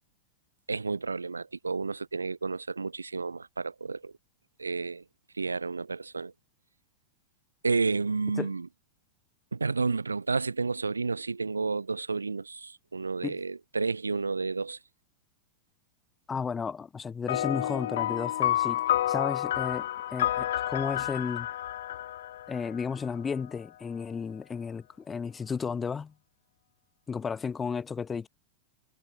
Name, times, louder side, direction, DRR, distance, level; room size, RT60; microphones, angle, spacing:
voice 1, 0.7-4.1 4.6-5.0 5.4-6.3 7.6-8.7 9.5-14.8, right 4 dB, 80° right, 2.3 m, -31 dB
voice 2, 16.3-18.8 19.1-21.5 22.5-26.1 27.1-28.3, left 6 dB, 15° left, 3.9 m, -33 dB
sound 1, 17.3-23.1, left 12 dB, 60° left, 0.3 m, -30 dB
figure-of-eight pair, 90°, 0 cm